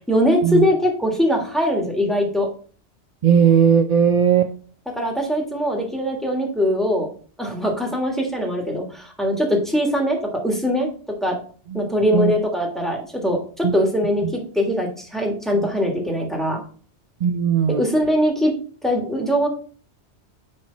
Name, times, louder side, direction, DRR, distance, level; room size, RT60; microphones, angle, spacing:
voice 1, 0.1-2.5 4.9-7.1 7.4-10.9 11.2-11.3 11.7-16.6 17.8-18.5 18.8-19.5, equal, ahead, 0 dB, 1.5 m, -21 dB
voice 2, 3.2-4.5 11.7-11.8 12.1-12.3 13.6-13.7 15.6-15.7 17.2-17.8, right 7 dB, 60° right, 7 dB, 0.4 m, -17 dB
9.5 x 3.4 x 3.9 m, 0.42 s
omnidirectional pair, 1.1 m